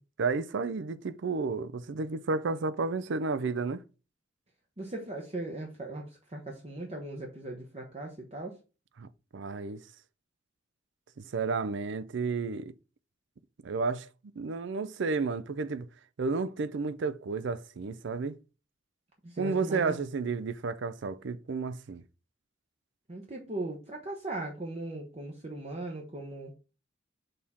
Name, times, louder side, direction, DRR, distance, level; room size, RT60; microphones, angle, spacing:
voice 1, 0.2-3.8 9.0-9.8 11.2-12.7 13.6-14.1 14.4-15.9 16.2-18.4 19.4-22.0, right 4 dB, 65° right, 0.5 m, -32 dB
voice 2, 4.8-8.6 19.2-19.9 23.1-26.5, right 2 dB, 30° right, 0.9 m, -38 dB
6.6 x 3.6 x 4.2 m
head